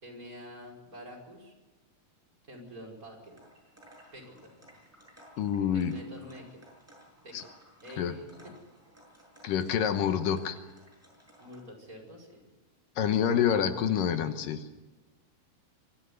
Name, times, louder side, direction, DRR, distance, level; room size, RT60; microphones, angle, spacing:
voice 1, 0.0-1.5 2.5-3.4 4.1-4.6 5.7-6.6 7.2-7.4 7.8-8.3 11.4-12.4, equal, 25° right, 1 dB, 5.7 m, -47 dB
sound 1, 3.2-11.6, equal, 5° right, 7.0 m, -57 dB
voice 2, 5.4-5.9 7.3-7.4 8.0-8.1 9.4-10.6 13.0-14.6, left 8 dB, 80° left, 9 dB, 2.7 m, -27 dB
24.0 x 13.5 x 9.5 m, 1.2 s
omnidirectional pair, 3.9 m